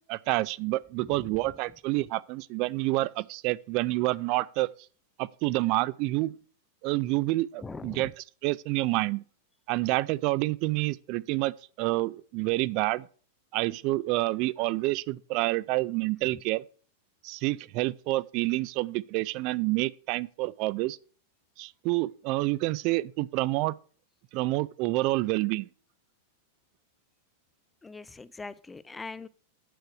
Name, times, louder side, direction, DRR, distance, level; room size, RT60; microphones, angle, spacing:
voice 1, 0.1-4.7 5.2-6.3 6.8-8.1 8.4-9.2 9.7-13.0 13.5-16.6 17.2-21.0 21.6-23.7 24.3-25.7, right 20 dB, 40° right, 0.4 m, -28 dB
voice 2, 7.6-8.1 16.2-16.3 27.8-29.3, left 3 dB, 10° left, 0.5 m, -42 dB
9.2 x 8.0 x 4.8 m
supercardioid pair, 150°, 0 cm